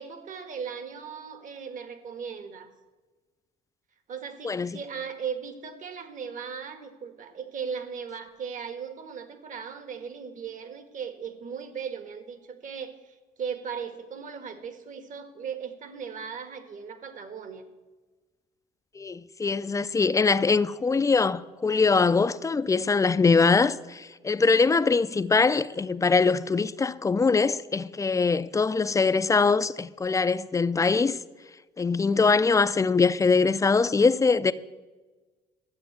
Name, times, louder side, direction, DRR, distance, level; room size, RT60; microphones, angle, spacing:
voice 1, 0.0-2.7 4.1-17.7, right 6 dB, 50° right, 1.6 m, -37 dB
voice 2, 4.4-4.8 19.0-31.2 31.8-34.5, left 4 dB, 20° left, 0.5 m, -23 dB
12.5 x 7.9 x 8.0 m
cardioid pair, 110°, 17 cm